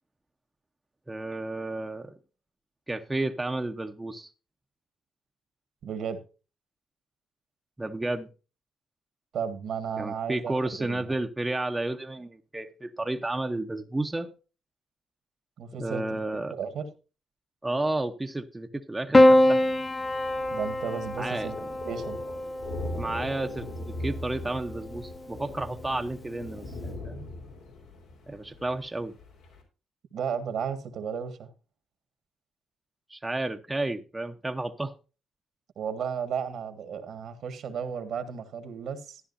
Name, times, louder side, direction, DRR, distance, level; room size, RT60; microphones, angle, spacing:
voice 1, 1.1-2.1 2.9-4.3 7.8-8.3 10.0-14.3 15.8-16.5 17.6-19.6 21.2-21.5 22.9-27.3 28.3-29.1 33.1-34.9, right 2 dB, 15° right, 0.9 m, -32 dB
voice 2, 5.8-6.2 9.3-11.0 15.6-16.2 16.5-16.9 20.5-21.6 21.8-22.2 30.1-31.5 35.7-39.2, right 7 dB, 70° right, 1.6 m, -34 dB
Piano, 19.1-23.6 24.8-25.5, left 1 dB, 20° left, 0.5 m, -24 dB
Thunder, 19.6-29.6, left 1 dB, 85° left, 3.6 m, -40 dB
13.0 x 10.5 x 2.6 m
cardioid pair, 90°, 0 cm